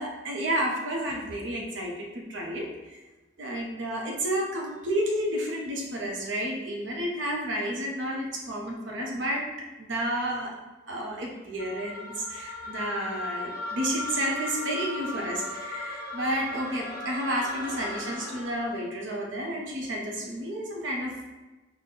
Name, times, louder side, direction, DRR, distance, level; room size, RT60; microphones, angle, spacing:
voice 1, 0.0-2.7 3.4-9.4 9.8-10.5 10.9-21.2, right 1 dB, 85° right, -1 dB, 0.8 m, -31 dB
sound 1, 11.6-18.8, left 1 dB, 55° left, 0.4 m, -37 dB
4.0 x 2.2 x 3.8 m, 1.1 s
head